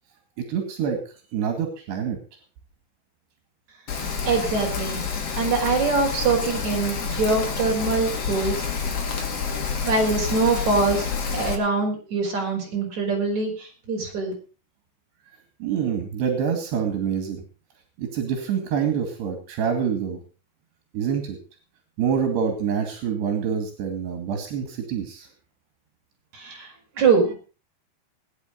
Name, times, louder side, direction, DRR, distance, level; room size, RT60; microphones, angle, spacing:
voice 1, 0.4-1.0 1.3-2.2 15.6-17.4 18.0-20.2 20.9-21.4 22.0-25.3, right 7 dB, 85° right, 6 dB, 4.5 m, -26 dB
Rain, 3.9-11.5, left 6 dB, 45° left, 3.1 m, -28 dB
voice 2, 4.2-5.0 5.3-8.7 9.4-9.5 9.8-14.3 26.3-26.7 27.0-27.3, right 4 dB, 45° right, 0 dB, 6.7 m, -23 dB
20.5 x 9.7 x 5.3 m, 0.37 s
omnidirectional pair, 4.7 m